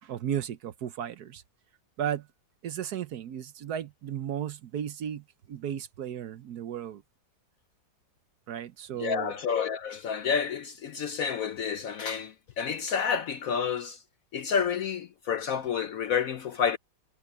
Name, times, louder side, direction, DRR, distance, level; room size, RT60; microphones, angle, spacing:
voice 1, 0.0-1.4 2.0-2.3 2.6-7.0 8.5-9.3, right 9 dB, 65° right, 1.2 m, -35 dB
voice 2, 9.0-14.0 14.3-16.8, left 7 dB, 65° left, 0.9 m, -29 dB
omnidirectional pair, 2.0 m